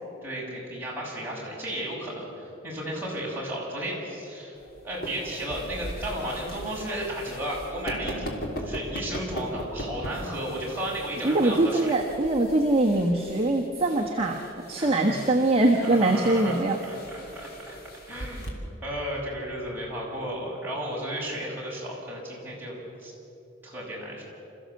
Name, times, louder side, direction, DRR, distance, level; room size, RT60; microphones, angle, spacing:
voice 1, 0.2-4.6 4.8-11.9 14.8-15.2 15.8-16.5 16.9-17.8 18.1-23.1 23.6-24.2, right 1 dB, 10° right, -5 dB, 6.2 m, -34 dB
sound 1, 4.6-18.5, equal, 50° left, 3.2 m, -39 dB
voice 2, 11.2-14.4 14.7-16.8, right 2 dB, 30° right, -1 dB, 1.3 m, -23 dB
27.0 x 14.5 x 7.8 m, 3.0 s
head